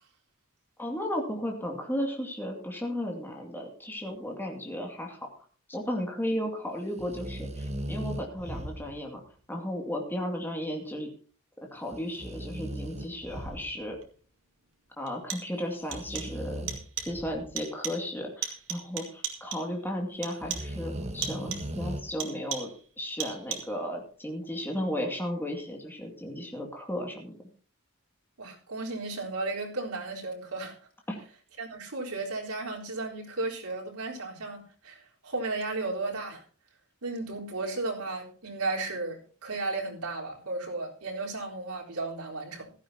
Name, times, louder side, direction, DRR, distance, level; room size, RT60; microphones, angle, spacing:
voice 1, 0.8-9.2 9.5-11.1 11.7-14.0 15.0-16.7 17.1-22.7 23.0-27.4 31.1-31.2, equal, 10° left, 2.4 m, -34 dB
sound 1, 7.0-9.2 11.9-14.0 15.7-17.6 20.4-22.0, right 1 dB, 30° right, 1.3 m, -38 dB
sound 2, 14.0-14.1 15.1-15.6 15.9-16.4 16.7-17.2 17.6-18.1 18.4-19.8 20.2-20.8 21.2-21.8 22.2-22.8 23.2-23.8, right 8 dB, 60° right, 2.3 m, -37 dB
voice 2, 28.4-30.7 31.6-36.4 37.0-42.7, right 3 dB, 85° right, 4.1 m, -34 dB
16.0 x 13.5 x 2.8 m
head